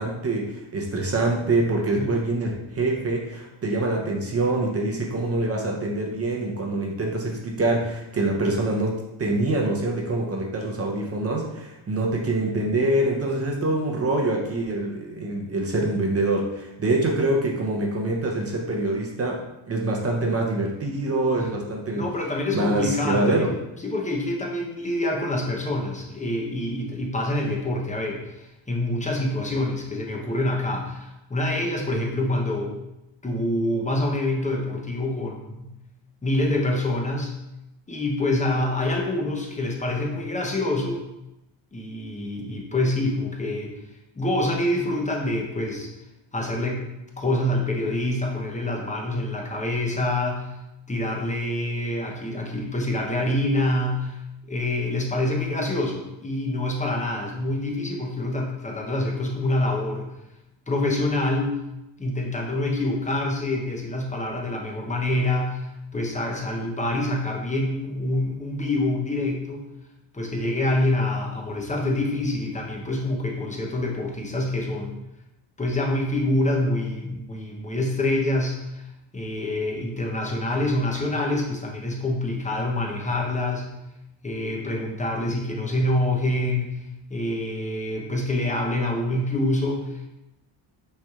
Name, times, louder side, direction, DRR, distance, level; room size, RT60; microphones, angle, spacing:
voice 1, 0.0-22.1 22.5-23.5, right 2 dB, 30° right, -1 dB, 0.7 m, -25 dB
voice 2, 21.9-23.5 23.8-32.7 33.2-35.7 36.2-37.3 37.9-41.0 41.7-43.7 44.2-45.9 46.3-46.8 47.2-50.5 50.9-54.2 54.5-60.1 60.7-61.6 62.0-69.6 70.1-75.0 75.6-78.8 79.1-83.7 84.2-86.7 87.1-90.1, left 1 dB, 15° left, 0 dB, 0.8 m, -26 dB
5.8 x 3.3 x 2.4 m, 0.92 s
cardioid pair, 120°, 47 cm